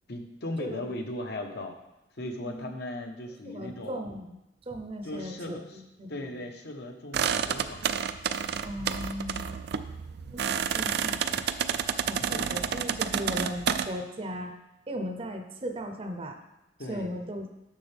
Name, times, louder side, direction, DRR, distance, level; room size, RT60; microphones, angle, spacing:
voice 1, 0.1-1.7 2.2-4.0 5.0-5.8 6.1-8.0 12.2-12.5 16.8-17.1, left 1 dB, 60° left, 4 dB, 1.0 m, -37 dB
voice 2, 0.6-0.9 2.4-2.7 3.5-4.4 4.7-6.4 8.6-9.5 10.3-11.2 12.1-14.5 14.9-16.4 16.9-17.5, equal, 30° right, 5 dB, 0.7 m, -37 dB
sound 1, 7.1-13.9, right 7 dB, 60° right, 0.4 m, -30 dB
10.0 x 6.6 x 3.4 m, 0.92 s
head